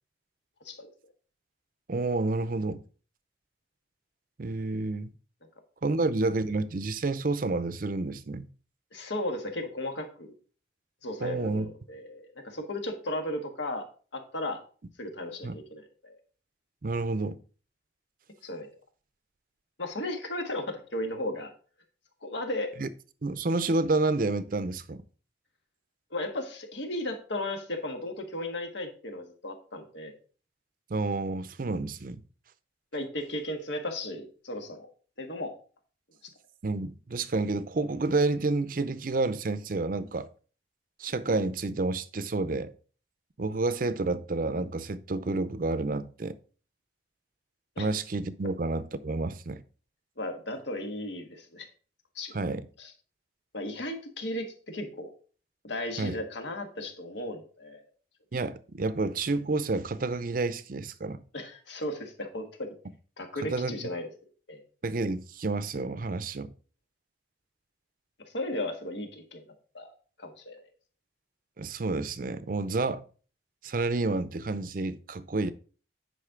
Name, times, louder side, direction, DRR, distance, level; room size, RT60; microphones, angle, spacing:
voice 1, 1.9-2.8 4.4-5.1 5.8-8.4 11.2-11.7 15.4-15.6 16.8-17.4 22.8-22.9 23.2-25.0 30.9-32.2 36.6-40.3 41.0-42.7 43.4-46.3 47.8-49.6 52.3-52.7 56.0-56.2 58.3-61.2 63.5-63.9 64.8-66.5 71.6-73.0 73.6-75.5, right 3 dB, 45° right, 0.5 m, -29 dB
voice 2, 8.9-10.3 11.0-13.9 14.1-14.6 15.0-16.2 18.4-18.7 19.8-21.5 22.2-22.7 26.1-30.1 32.9-34.9 35.2-35.5 36.2-36.3 47.8-47.9 50.2-51.7 52.1-52.4 52.8-52.9 53.5-55.1 55.6-57.8 61.3-62.7 63.2-64.1 64.5-64.6 68.2-69.4 69.7-69.9 70.2-70.6, left 1 dB, 70° left, 1.6 m, -35 dB
9.9 x 5.3 x 3.7 m
head